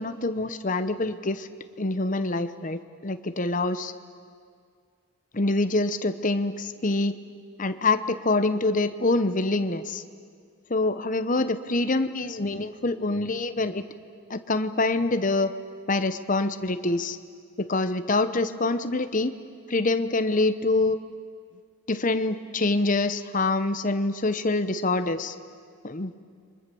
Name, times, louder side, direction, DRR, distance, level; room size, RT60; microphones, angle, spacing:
voice 1, 0.0-1.5 1.8-3.9 5.3-7.1 7.6-10.0 10.7-13.8 14.3-15.5 15.9-17.2 17.6-19.3 19.7-21.0 21.9-25.3 25.8-26.1, left 2 dB, 35° left, 11 dB, 0.9 m, -25 dB
29.5 x 24.0 x 7.0 m, 2.1 s
head